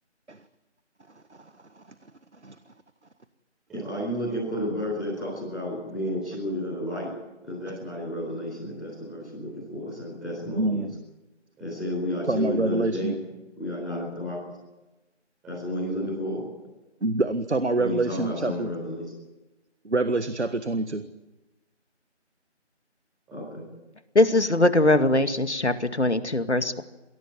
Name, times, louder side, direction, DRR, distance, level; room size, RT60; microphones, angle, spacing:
voice 1, 3.7-7.1 7.4-10.8 11.6-13.1 13.5-14.4 15.4-16.4 17.8-19.1 23.3-23.6, left 1 dB, ahead, -14 dB, 5.8 m, -31 dB
voice 2, 10.6-10.9 12.3-13.2 17.0-18.7 19.8-21.0, right 2 dB, 70° right, 11 dB, 1.6 m, -26 dB
voice 3, 24.1-26.8, left 2 dB, 70° left, 9 dB, 2.2 m, -21 dB
28.0 x 18.5 x 9.7 m, 1.1 s
figure-of-eight pair, 180°, 36 cm